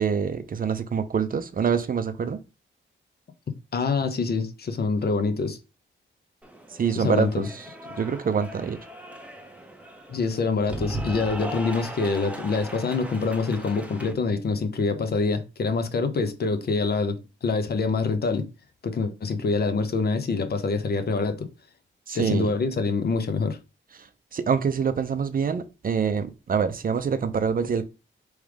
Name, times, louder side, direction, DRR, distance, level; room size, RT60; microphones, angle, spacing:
voice 1, 0.0-2.4 6.7-7.7 8.0-8.8 22.1-22.5 24.0-24.1 24.3-27.8, right 6 dB, 45° right, 0.5 m, -25 dB
voice 2, 3.7-5.6 7.0-7.5 10.1-18.5 18.8-21.5 22.1-23.6, left 4 dB, 50° left, 0.7 m, -25 dB
Cheering / Applause, 6.4-14.1, right 1 dB, 5° right, 0.7 m, -38 dB
3.4 x 3.2 x 4.9 m
wide cardioid pair, 135°, 21 cm